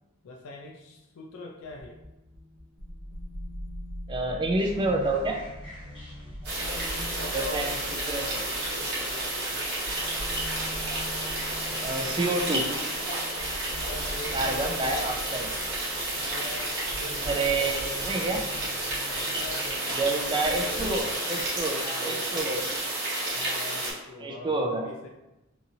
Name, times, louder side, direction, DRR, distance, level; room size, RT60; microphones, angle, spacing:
voice 1, 0.2-2.0 6.6-9.7 11.7-12.6 13.8-15.2 16.1-18.0 19.1-22.7 23.3-25.1, left 2 dB, 80° left, 1 dB, 0.4 m, -43 dB
sound 1, 1.6-21.0, equal, 45° left, 0.7 m, -42 dB
voice 2, 4.1-5.4 7.3-7.8 8.1-8.2 11.8-12.6 14.3-15.5 17.2-18.4 20.0-21.8 22.0-22.6 24.2-24.8, right 2 dB, 20° right, 2 dB, 0.3 m, -28 dB
sound 2, 4.6-6.8, left 1 dB, 25° left, 1.1 m, -44 dB
sound 3, 6.4-23.9, right 1 dB, 55° right, 0.9 m, -31 dB
2.8 x 2.6 x 2.6 m, 0.97 s
head